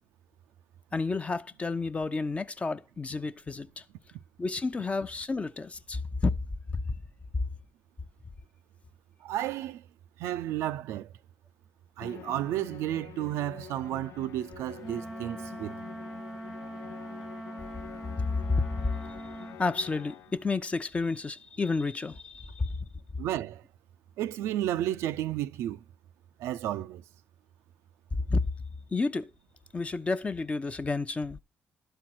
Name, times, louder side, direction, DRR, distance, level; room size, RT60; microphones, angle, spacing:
voice 1, 0.9-3.8 4.4-6.3 6.7-6.9 7.3-7.4 18.2-19.0 19.6-22.8 28.2-28.5 28.9-29.3 29.7-31.4, left 3 dB, 30° left, 0.7 m, -30 dB
voice 2, 9.2-9.8 10.2-11.1 12.0-15.7 23.2-23.6 24.2-25.8 26.4-27.0, right 12 dB, 90° right, 0.4 m, -32 dB
Musical instrument, 12.0-20.5, left 12 dB, 75° left, 0.4 m, -47 dB
Wind instrument woodwind instrument, 14.8-19.6, right 1 dB, 5° right, 0.4 m, -42 dB
11.5 x 4.5 x 6.1 m
cardioid pair, 75°, 5 cm